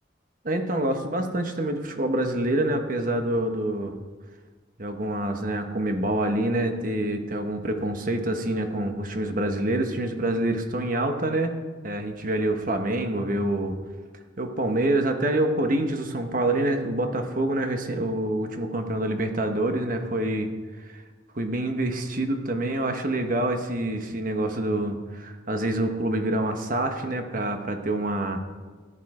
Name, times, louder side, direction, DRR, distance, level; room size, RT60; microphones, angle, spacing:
voice 1, 0.4-3.9 4.8-11.5 11.8-13.8 14.4-20.5 20.8-21.0 21.3-28.4, right 1 dB, 45° right, 5 dB, 1.1 m, -26 dB
14.5 x 10.0 x 4.9 m, 1.4 s
head